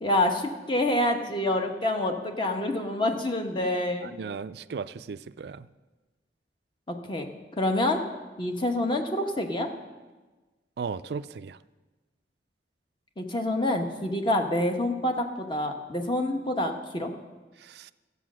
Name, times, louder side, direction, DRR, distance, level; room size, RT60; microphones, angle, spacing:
voice 1, 0.0-4.1 6.9-7.3 7.6-8.0 8.4-9.7 13.2-17.1, left 1 dB, 25° left, 4 dB, 1.1 m, -27 dB
voice 2, 4.0-5.7 10.8-11.6 17.6-17.9, right 5 dB, 60° right, 14 dB, 0.4 m, -36 dB
13.0 x 8.3 x 6.2 m, 1.2 s
head